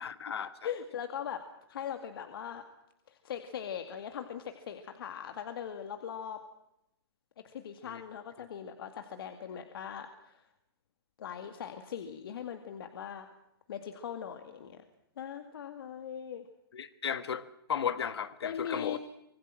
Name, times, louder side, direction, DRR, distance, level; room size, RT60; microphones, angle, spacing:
voice 1, 0.0-0.7 7.8-8.0 16.7-17.4 17.7-19.0, left 8 dB, 80° left, 12 dB, 1.4 m, -35 dB
voice 2, 0.6-1.4 1.7-2.6 3.1-6.4 7.4-10.4 11.2-13.3 13.7-14.8 15.2-16.5 18.4-19.0, left 8 dB, 65° left, 7 dB, 2.2 m, -40 dB
25.5 x 19.0 x 7.6 m, 0.85 s
hypercardioid pair, 150°, 13 cm